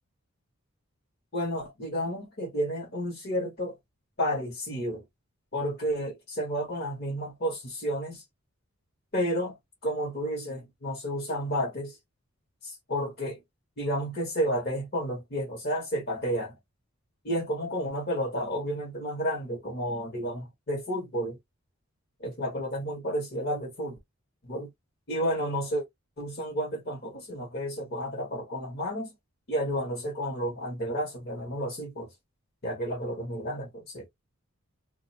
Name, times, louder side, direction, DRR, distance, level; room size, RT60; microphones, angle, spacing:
voice 1, 1.3-3.8 4.2-5.0 5.5-8.2 9.1-9.6 9.8-12.0 12.6-13.4 13.8-16.6 17.2-21.4 22.2-24.0 24.4-24.7 25.1-25.8 26.2-29.1 29.5-32.1 32.6-34.1, equal, 45° left, 1.1 m, -31 dB
2.5 x 2.3 x 2.6 m
head